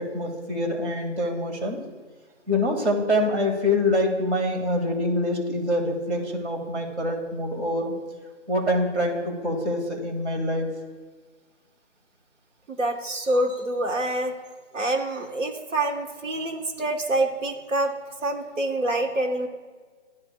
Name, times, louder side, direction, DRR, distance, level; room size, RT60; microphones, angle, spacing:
voice 1, 0.0-1.8 2.5-7.9 8.5-10.7, left 1 dB, 65° right, 2 dB, 1.9 m, -25 dB
voice 2, 12.8-14.3 14.7-17.9 18.2-19.5, right 1 dB, 85° right, 4 dB, 1.2 m, -26 dB
12.0 x 4.7 x 2.2 m, 1.4 s
hypercardioid pair, 175°, 36 cm